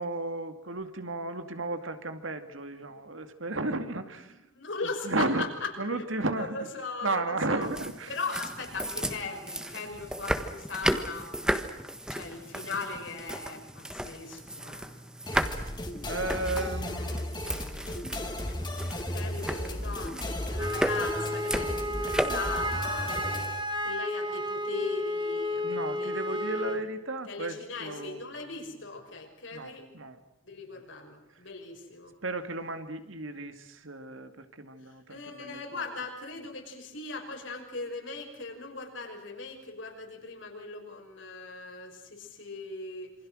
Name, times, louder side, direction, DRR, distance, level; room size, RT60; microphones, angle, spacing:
voice 1, 0.0-4.3 5.0-5.5 5.8-6.7 7.0-8.1 15.3-15.8 16.0-17.3 18.1-18.3 25.6-28.3 29.5-30.2 32.2-35.6, right 2 dB, 75° right, 8 dB, 2.4 m, -34 dB
voice 2, 2.6-3.1 4.0-4.1 4.5-6.0 6.4-7.7 8.1-11.3 12.1-15.0 19.1-23.2 23.8-26.8 27.3-29.9 30.4-32.1 34.8-43.1, left 3 dB, 70° left, 3 dB, 5.9 m, -39 dB
sound 1, 7.6-23.4, equal, 5° right, 1.4 m, -35 dB
sound 2, 15.3-23.6, left 1 dB, 20° left, 2.5 m, -35 dB
Wind instrument woodwind instrument, 20.6-26.8, left 1 dB, 20° right, 1.9 m, -32 dB
27.5 x 25.0 x 6.4 m, 0.89 s
head